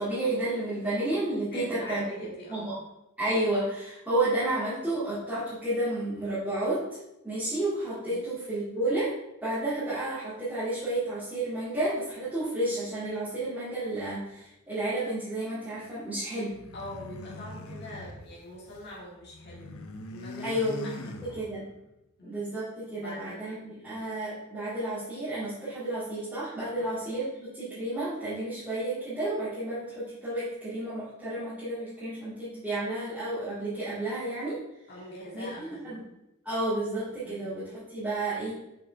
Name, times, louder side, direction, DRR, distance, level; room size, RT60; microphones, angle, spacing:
voice 1, 0.0-2.0 2.5-2.7 3.2-6.8 7.2-9.1 9.4-16.5 20.4-20.9 21.3-21.6 22.2-34.6 35.3-36.0 36.4-38.5, right 1 dB, 5° right, -14 dB, 2.4 m, -31 dB
voice 2, 1.5-2.7 8.1-8.2 16.7-19.8 20.1-21.5 22.2-22.4 22.9-23.4 26.7-27.0 34.9-35.9 37.2-37.5, left 1 dB, 50° left, -4 dB, 2.2 m, -43 dB
sound 1, 16.5-18.9 19.2-21.8, left 2 dB, 65° left, 0.7 m, -42 dB
7.2 x 5.9 x 3.4 m, 0.90 s
head